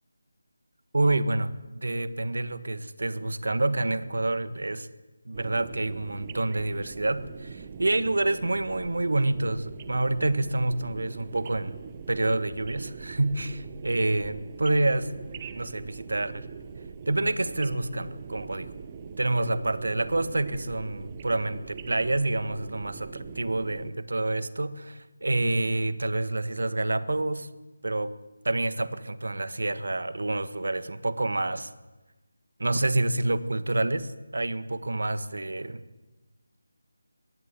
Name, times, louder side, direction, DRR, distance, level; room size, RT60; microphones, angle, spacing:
voice 1, 0.9-4.9 5.2-11.8 12.1-15.1 15.5-16.4 17.1-18.7 19.2-27.5 27.8-28.1 28.4-31.7 32.6-35.8, right 2 dB, 60° right, 13 dB, 1.6 m, -28 dB
sound 1, 5.3-23.9, right 6 dB, 25° right, 1.2 m, -42 dB
22.5 x 18.0 x 7.5 m, 1.1 s
figure-of-eight pair, 160°, 0 cm